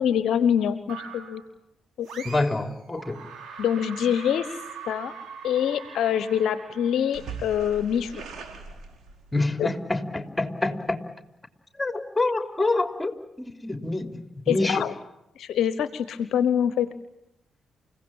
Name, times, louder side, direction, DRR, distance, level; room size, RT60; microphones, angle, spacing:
voice 1, 0.0-1.4 2.0-2.2 3.6-4.5 4.8-5.1 5.4-8.1 14.5-14.9 15.4-16.9, left 9 dB, 70° left, 13 dB, 1.0 m, -25 dB
sound 1, 0.9-1.5 2.0-2.7 3.0-9.4, right 5 dB, 65° right, 4.8 m, -41 dB
voice 2, 2.2-3.2 9.3-11.0 11.8-14.9, left 2 dB, 15° left, 6 dB, 3.5 m, -27 dB
29.5 x 17.0 x 8.9 m, 0.81 s
hypercardioid pair, 40°, 0 cm